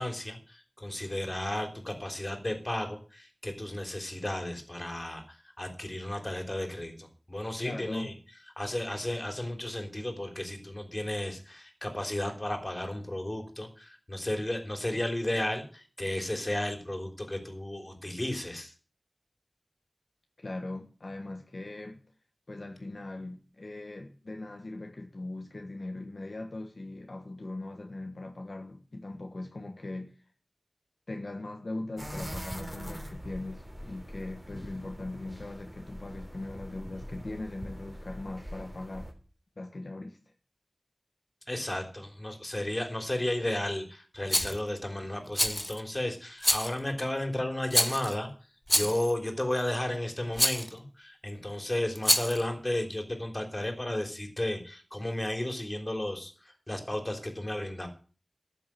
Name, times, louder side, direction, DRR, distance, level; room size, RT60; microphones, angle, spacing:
voice 1, 0.0-8.1 8.6-18.7 41.5-48.3 48.7-57.9, left 1 dB, 30° left, 3.4 m, -33 dB
voice 2, 7.6-8.1 20.4-22.0 22.5-30.1 31.1-39.1 39.6-40.2, left 2 dB, 70° left, 1.5 m, -40 dB
sound 1, 32.0-39.1, equal, 10° right, 3.5 m, -42 dB
Rattle, 44.3-44.6 45.3-45.8 46.4-46.8 47.7-48.1 48.7-49.1 50.4-50.7 52.0-52.4, equal, 15° left, 1.6 m, -26 dB
13.0 x 7.3 x 7.6 m
wide cardioid pair, 55°, 0 cm